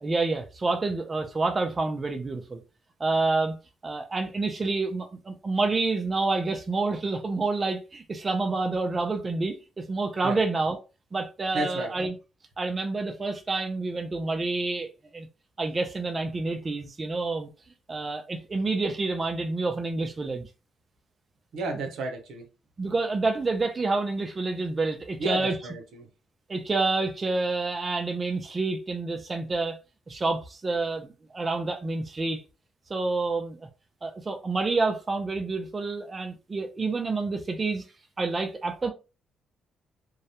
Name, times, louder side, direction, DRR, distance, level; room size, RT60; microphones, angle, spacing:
voice 1, 0.0-2.6 3.0-3.6 3.8-10.8 11.1-12.1 12.6-15.3 15.6-17.5 17.9-20.5 22.8-25.6 26.5-29.8 30.1-32.4 32.9-33.7 34.0-37.8 38.2-38.9, right 3 dB, 30° right, 0.4 m, -28 dB
voice 2, 11.5-11.9 21.5-22.5 25.2-26.1, right 2 dB, 75° right, 0.7 m, -32 dB
2.3 x 2.0 x 2.7 m
cardioid pair, 90°, 0 cm